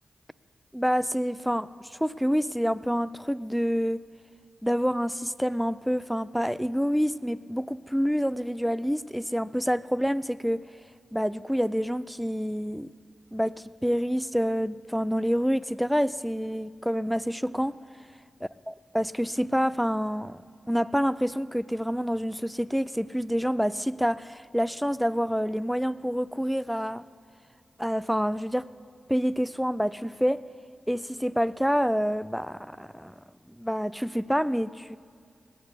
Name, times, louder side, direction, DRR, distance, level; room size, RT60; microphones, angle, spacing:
voice 1, 0.7-4.0 4.6-10.6 11.1-12.9 13.3-17.8 18.9-27.0 27.8-28.7 29.1-30.4 30.9-33.2 33.6-35.0, equal, ahead, 18 dB, 0.5 m, -27 dB
19.5 x 9.1 x 8.2 m, 2.4 s
cardioid pair, 45°, 0 cm